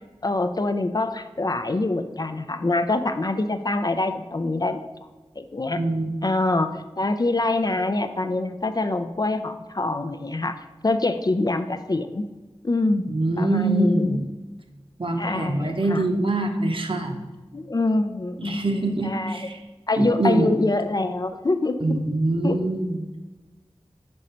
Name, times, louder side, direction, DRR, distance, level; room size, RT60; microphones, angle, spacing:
voice 1, 0.2-4.8 5.4-5.8 6.2-10.6 10.8-12.2 12.6-13.1 13.4-14.2 15.2-16.0 17.5-19.5 19.9-21.8 22.4-22.6, left 2 dB, 40° left, 9 dB, 0.4 m, -25 dB
voice 2, 5.8-6.1 13.1-14.3 15.0-17.3 18.4-19.6 20.0-20.5 21.8-23.0, right 2 dB, 55° right, 3 dB, 0.8 m, -24 dB
5.3 x 4.9 x 4.3 m, 1.2 s
wide cardioid pair, 50°, 10 cm